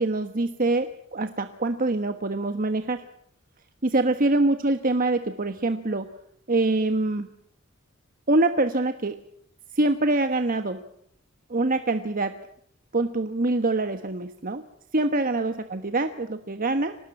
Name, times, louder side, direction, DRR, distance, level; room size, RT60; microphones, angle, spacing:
voice 1, 0.0-3.0 3.8-6.1 6.5-7.3 8.3-9.2 9.7-10.8 11.5-12.3 12.9-14.6 14.9-17.0, right 2 dB, 45° right, 8 dB, 1.3 m, -24 dB
25.0 x 19.5 x 8.9 m, 0.71 s
head